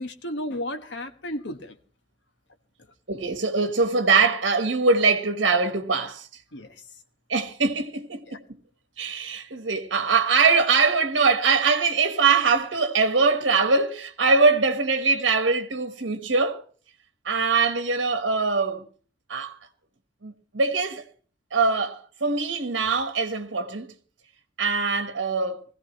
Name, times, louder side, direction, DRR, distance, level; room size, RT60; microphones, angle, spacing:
voice 1, 0.0-1.8 6.5-6.9 8.3-8.4, left 1 dB, 65° left, 1.3 m, -33 dB
voice 2, 3.1-6.3 7.3-8.4 9.0-16.6 17.2-18.9 19.3-19.6 20.2-21.0 21.5-23.9 24.6-25.6, right 4 dB, 75° right, 1.3 m, -22 dB
20.5 x 15.5 x 3.1 m
head